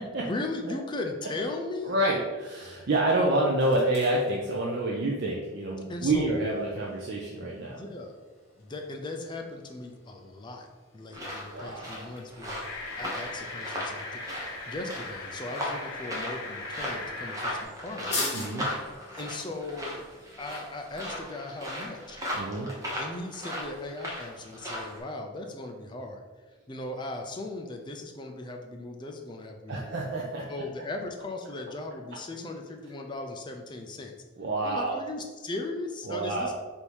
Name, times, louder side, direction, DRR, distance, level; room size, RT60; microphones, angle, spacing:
voice 1, 0.2-2.0 5.9-6.4 6.7-6.8 7.7-8.2 8.6-10.7 10.9-14.3 14.7-18.3 19.1-20.1 20.4-22.2 23.0-26.2 26.7-30.0 30.5-34.1 34.6-36.5, left 2 dB, 20° left, 3 dB, 0.4 m, -38 dB
sound 1, 1.6-21.2, left 2 dB, 55° left, 1.4 m, -45 dB
voice 2, 1.8-7.8 11.5-12.1 18.3-18.7 22.3-22.7 29.7-30.4 34.4-35.0 36.1-36.5, right 1 dB, 55° right, -3 dB, 0.5 m, -28 dB
sound 2, 11.1-25.0, equal, 15° right, 0.8 m, -37 dB
sound 3, 12.6-17.6, left 2 dB, 85° left, 0.7 m, -39 dB
3.4 x 2.7 x 4.6 m, 1.3 s
head